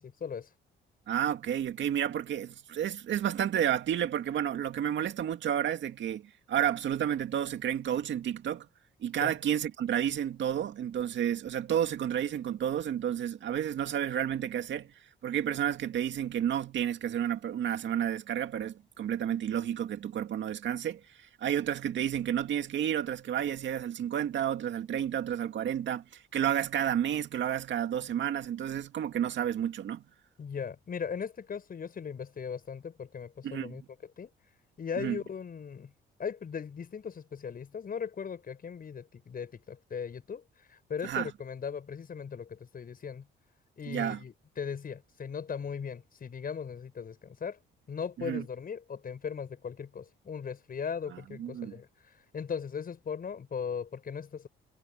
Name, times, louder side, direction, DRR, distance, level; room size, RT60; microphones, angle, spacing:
voice 1, 1.1-6.2 6.5-8.7 9.0-14.9 15.2-21.0 21.4-30.0 33.4-33.8 35.0-35.2 41.0-41.3 43.9-44.2 48.2-48.4 51.1-51.7, right 10 dB, 70° right, 2.2 m, -31 dB
voice 2, 30.4-33.8 34.2-34.3 34.8-35.9 36.2-40.4 40.7-43.3 43.8-47.6 47.9-51.9 52.3-54.5, left 6 dB, 45° left, 7.4 m, -38 dB
cardioid pair, 90°, 20 cm